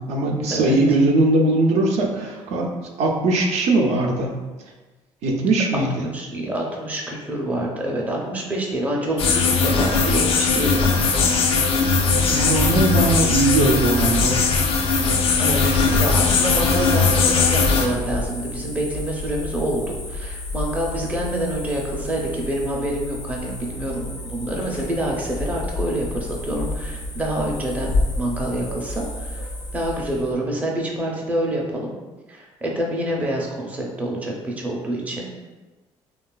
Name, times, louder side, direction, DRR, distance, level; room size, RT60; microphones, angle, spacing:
voice 1, 0.0-2.7 3.0-4.4 5.2-6.1 12.3-14.4, right 2 dB, 65° right, -1 dB, 0.4 m, -20 dB
voice 2, 5.7-11.4 15.4-29.5 29.7-31.9 32.3-35.3, right 1 dB, 10° right, -2 dB, 0.5 m, -27 dB
sound 1, 9.2-17.9, left 4 dB, 55° left, 0.4 m, -19 dB
sound 2, 12.0-30.3, left 2 dB, 70° left, 0.8 m, -31 dB
3.1 x 2.3 x 2.2 m, 1.2 s
cardioid pair, 100°, 12 cm